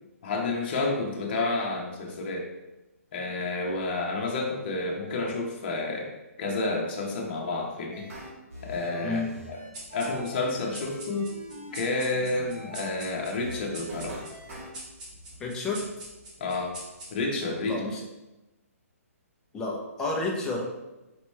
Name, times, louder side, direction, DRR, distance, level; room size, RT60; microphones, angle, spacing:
voice 1, 0.2-2.5 3.1-6.1 6.4-8.1 8.6-9.2 9.5-9.6 9.9-11.3 11.7-14.2 16.4-16.7 17.1-17.8, left 2 dB, 40° left, -1 dB, 0.9 m, -30 dB
sound 1, 7.9-12.9 13.3-14.7, equal, 65° right, 1.5 m, -43 dB
voice 2, 9.0-9.4 15.4-15.8 17.6-18.0 19.5-20.6, left 3 dB, 10° left, -2 dB, 0.5 m, -30 dB
sound 2, 9.7-17.5, right 1 dB, 30° right, 1.0 m, -45 dB
4.4 x 2.9 x 3.1 m, 1.0 s
hypercardioid pair, 165°, 8 cm